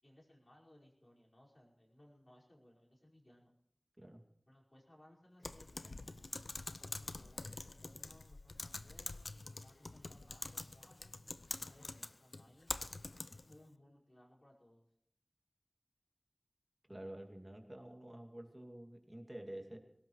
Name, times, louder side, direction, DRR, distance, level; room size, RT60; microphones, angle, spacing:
voice 1, 0.0-3.5 4.5-6.0 6.4-12.7 13.4-14.9, left 1 dB, 45° left, -4 dB, 5.0 m, -64 dB
Typing, 5.4-13.6, left 2 dB, 85° left, 0.6 m, -46 dB
voice 2, 16.9-19.8, right 1 dB, 25° right, 3 dB, 2.4 m, -49 dB
22.0 x 18.5 x 3.2 m, 0.74 s
wide cardioid pair, 50°, 0 cm